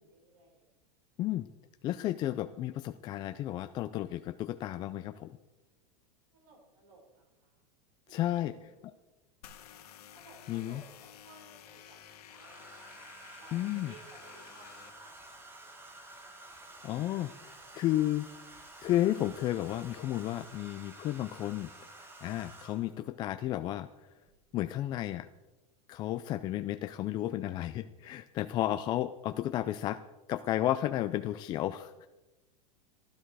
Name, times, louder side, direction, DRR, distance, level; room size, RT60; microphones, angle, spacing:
voice 1, 0.1-0.6 6.3-7.5 8.1-8.9 10.1-12.0 12.3-13.0 13.4-14.7 15.0-15.9 16.2-16.3 16.6-16.7 17.0-17.7, right 3 dB, 55° right, 0 dB, 5.6 m, -58 dB
voice 2, 1.8-5.3 8.1-8.6 10.5-10.8 13.5-13.9 16.8-17.3 17.7-18.3 18.8-21.7 22.0-23.9 24.5-25.3 25.9-30.0 30.3-32.1, left 13 dB, 25° left, 10 dB, 0.3 m, -32 dB
sound 1, 9.4-14.9, left 10 dB, 75° left, 1.6 m, -53 dB
Domestic sounds home sounds, 10.2-10.9 12.3-23.0 24.3-24.5 24.8-25.2, right 2 dB, 10° right, 1.4 m, -51 dB
14.0 x 12.5 x 4.8 m, 1.1 s
supercardioid pair, 155°, 20 cm